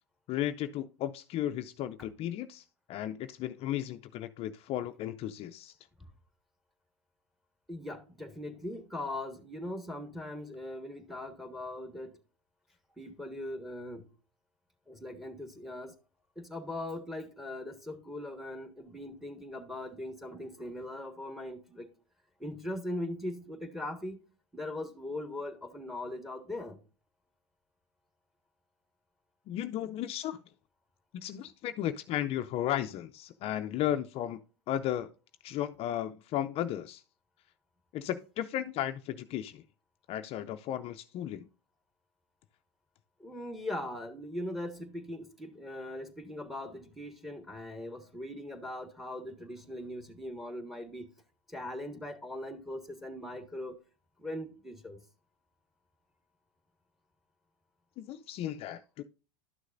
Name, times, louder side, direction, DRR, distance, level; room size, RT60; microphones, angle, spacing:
voice 1, 0.3-2.6 2.9-5.7 29.5-30.4 31.1-34.4 34.7-35.1 35.4-37.0 37.9-39.6 40.1-41.4 58.0-59.0, left 11 dB, 45° left, 0.5 m, -34 dB
voice 2, 7.7-12.1 13.0-14.1 14.9-15.9 16.4-21.9 22.4-24.2 24.5-26.8 43.2-51.1 51.5-53.7 54.2-55.0, left 1 dB, ahead, 1.4 m, -40 dB
12.0 x 6.4 x 2.6 m
hypercardioid pair, 100°, 14 cm